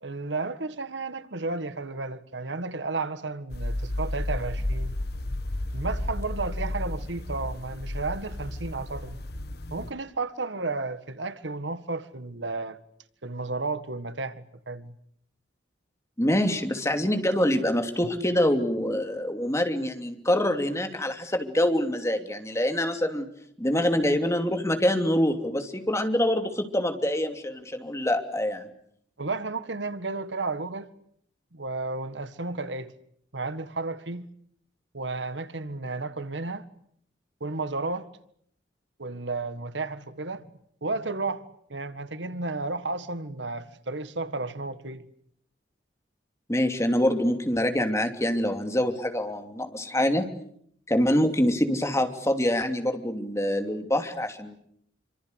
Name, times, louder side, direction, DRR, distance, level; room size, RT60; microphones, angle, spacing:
voice 1, 0.0-5.0 5.7-9.2 9.7-12.8 13.2-14.9 29.2-30.9 31.5-32.9 33.3-34.3 34.9-36.7 37.4-38.1 39.0-40.5 40.8-41.5 41.7-45.1, right 3 dB, 85° right, 1.7 m, -33 dB
sound 1, 3.5-9.9, left 1 dB, 60° left, 1.7 m, -32 dB
voice 2, 16.2-23.3 23.6-28.7 46.5-50.3 50.9-54.6, left 1 dB, 15° left, 3.0 m, -25 dB
27.5 x 26.0 x 8.2 m
head